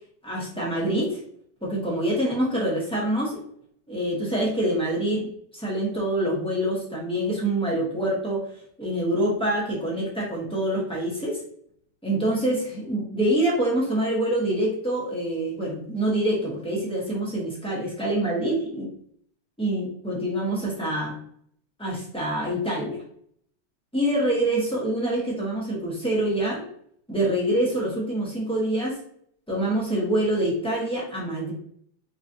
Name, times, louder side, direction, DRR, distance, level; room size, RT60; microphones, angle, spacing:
voice 1, 0.2-1.2 1.6-3.4 3.9-8.4 8.8-11.4 12.0-18.9 19.6-21.1 21.8-23.0 23.9-26.6 27.1-29.0 29.5-31.5, right 1 dB, 5° left, -5 dB, 0.5 m, -26 dB
5.6 x 2.4 x 2.7 m, 0.65 s
omnidirectional pair, 2.4 m